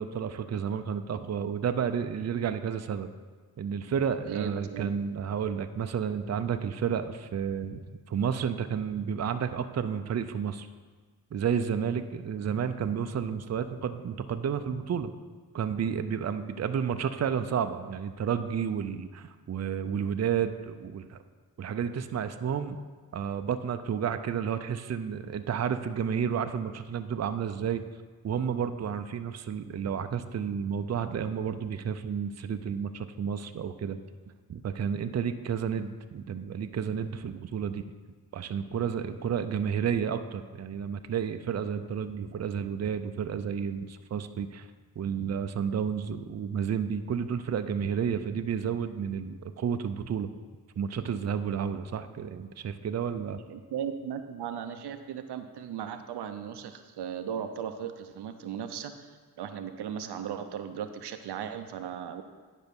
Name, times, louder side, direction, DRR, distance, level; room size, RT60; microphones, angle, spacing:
voice 1, 0.0-3.1 3.6-10.7 11.3-15.1 15.5-21.2 21.6-22.8 23.1-27.8 28.2-34.0 34.5-37.8 38.3-44.7 45.0-50.3 50.8-53.4, right 7 dB, 40° right, 9 dB, 0.5 m, -31 dB
voice 2, 4.3-4.9 53.5-59.1 59.4-62.2, right 8 dB, 85° right, 8 dB, 0.7 m, -37 dB
10.5 x 5.3 x 5.3 m, 1.5 s
cardioid pair, 75°, 39 cm